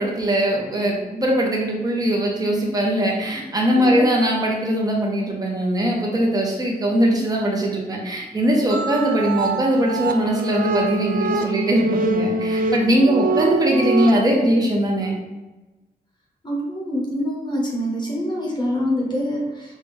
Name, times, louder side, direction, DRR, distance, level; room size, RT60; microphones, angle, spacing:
voice 1, 0.0-15.2, right 1 dB, 25° right, -2 dB, 0.8 m, -20 dB
voice 2, 3.7-4.1 16.4-19.8, equal, 25° left, -3 dB, 0.8 m, -25 dB
sound 1, 8.7-11.1, right 6 dB, 85° right, 0.9 m, -35 dB
sound 2, 8.8-14.1, right 2 dB, 60° right, 0.4 m, -24 dB
5.7 x 2.2 x 3.3 m, 1.1 s
wide cardioid pair, 180°, 16 cm